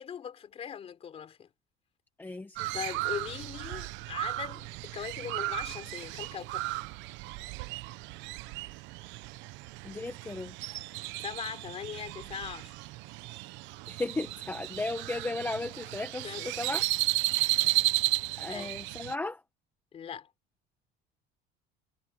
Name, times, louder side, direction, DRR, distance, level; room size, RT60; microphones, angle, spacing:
voice 1, 0.0-1.5 2.7-6.7 11.2-12.7 16.2-16.8 17.4-17.8 18.5-18.7 19.9-20.3, left 8 dB, 30° left, 3.5 m, -40 dB
voice 2, 2.2-2.7 9.8-10.5 13.9-16.3 16.6-16.9 18.4-19.4, left 2 dB, 10° left, 1.0 m, -35 dB
Crow, 2.6-19.1, right 20 dB, 65° right, 0.9 m, -34 dB
cardioid pair, 170°, 21 cm